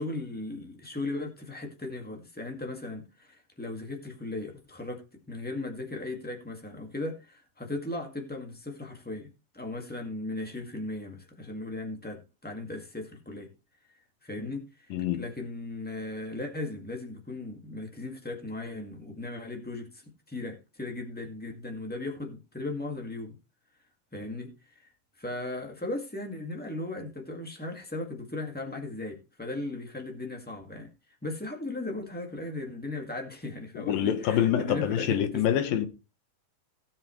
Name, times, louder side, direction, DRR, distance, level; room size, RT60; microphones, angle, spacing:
voice 1, 0.0-13.5 14.2-20.0 20.3-23.3 24.1-24.5 25.2-30.9 31.2-35.4, left 2 dB, 5° left, 0.7 m, -37 dB
voice 2, 14.9-15.3 33.7-35.9, left 10 dB, 90° left, 3.0 m, -26 dB
18.0 x 7.6 x 3.2 m
omnidirectional pair, 3.9 m